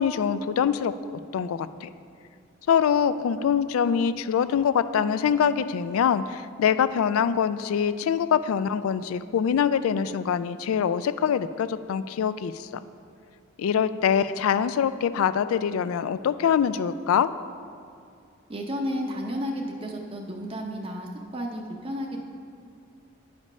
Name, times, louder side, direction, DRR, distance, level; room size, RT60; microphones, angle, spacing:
voice 1, 0.0-1.9 2.7-12.7 13.6-17.3, left 7 dB, 80° left, 14 dB, 0.3 m, -24 dB
voice 2, 18.5-22.2, equal, 25° right, 1 dB, 0.6 m, -32 dB
9.4 x 5.2 x 5.3 m, 2.4 s
head